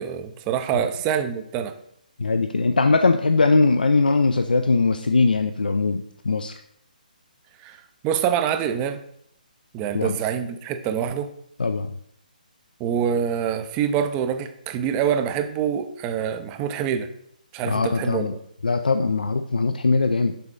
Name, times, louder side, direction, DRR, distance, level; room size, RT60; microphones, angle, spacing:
voice 1, 0.0-1.7 7.6-7.8 8.0-9.0 9.7-11.3 12.8-17.1 17.5-18.4, right 8 dB, 20° right, 9 dB, 0.4 m, -25 dB
voice 2, 2.2-6.5 9.9-10.2 11.6-11.9 17.6-18.3 18.6-20.3, left 3 dB, 75° left, 8 dB, 0.4 m, -21 dB
6.8 x 4.0 x 3.7 m, 0.71 s
figure-of-eight pair, 140°, 5 cm